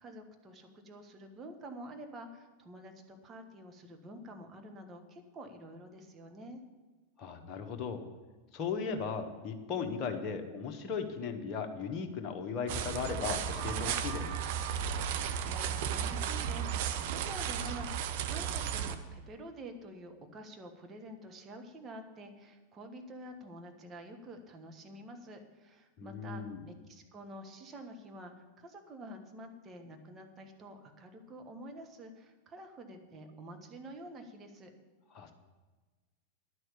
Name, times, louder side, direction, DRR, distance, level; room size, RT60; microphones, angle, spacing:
voice 1, 0.0-6.6 15.0-34.7, right 1 dB, 25° right, 4 dB, 1.5 m, -48 dB
voice 2, 7.2-8.0 8.5-14.4 26.0-26.6 35.1-35.3, left 5 dB, 35° left, 3 dB, 1.4 m, -37 dB
sound 1, 12.7-19.0, right 8 dB, 50° right, 0.8 m, -34 dB
10.5 x 6.3 x 8.1 m, 1.3 s
figure-of-eight pair, 90°, 0 cm